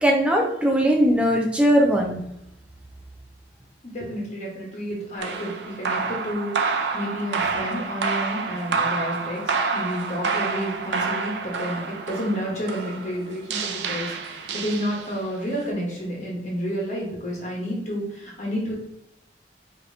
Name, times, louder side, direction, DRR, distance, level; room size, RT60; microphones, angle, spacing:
voice 1, 0.0-2.2, equal, 5° right, -1 dB, 0.5 m, -19 dB
voice 2, 3.8-18.7, equal, 45° left, -3 dB, 1.1 m, -30 dB
sound 1, 5.2-15.4, right 4 dB, 75° right, 0.5 m, -28 dB
5.1 x 2.8 x 2.7 m, 0.80 s
head